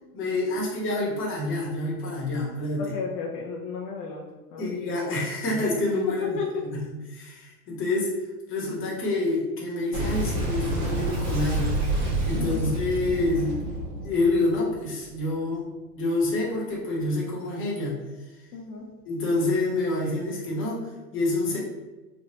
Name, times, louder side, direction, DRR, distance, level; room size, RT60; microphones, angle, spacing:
voice 1, 0.1-2.9 4.6-6.2 6.7-6.8 7.1-8.1 8.5-13.6 14.0-15.6 15.9-18.0 19.0-21.6, left 2 dB, 25° left, -4 dB, 1.2 m, -27 dB
voice 2, 2.8-4.7 6.1-6.7 12.3-12.7 18.5-18.9, left 5 dB, 65° left, -1 dB, 0.7 m, -33 dB
Boom, 9.9-15.1, right 1 dB, 45° right, 1.3 m, -28 dB
3.3 x 2.5 x 2.9 m, 1.1 s
hypercardioid pair, 125°, 49 cm